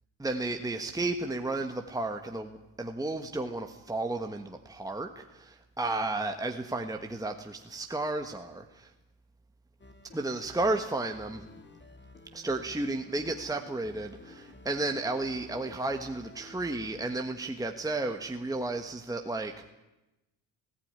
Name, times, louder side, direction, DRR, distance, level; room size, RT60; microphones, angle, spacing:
voice 1, 0.2-8.9 10.1-11.4 12.3-19.7, right 2 dB, 5° right, 4 dB, 1.4 m, -33 dB
sound 1, 9.8-17.2, left 2 dB, 25° left, 2.1 m, -52 dB
19.5 x 14.5 x 9.7 m, 0.99 s
cardioid pair, 80°, 48 cm